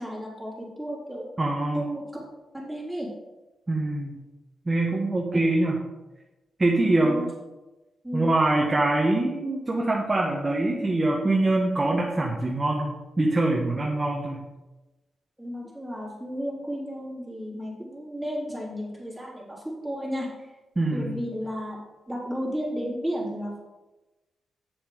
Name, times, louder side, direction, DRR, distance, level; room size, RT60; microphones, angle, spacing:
voice 1, 0.0-1.3 1.7-2.2 2.5-3.1 6.9-7.3 8.0-8.4 15.4-20.5 20.9-21.8 22.1-23.6, equal, 5° right, -5 dB, 3.5 m, -33 dB
voice 2, 1.4-1.8 3.7-4.2 4.7-5.8 6.6-7.2 8.1-12.9 13.2-14.4 20.8-21.2, right 2 dB, 25° right, -2 dB, 1.4 m, -24 dB
8.4 x 7.2 x 5.0 m, 1.1 s
cardioid pair, 105°, 0 cm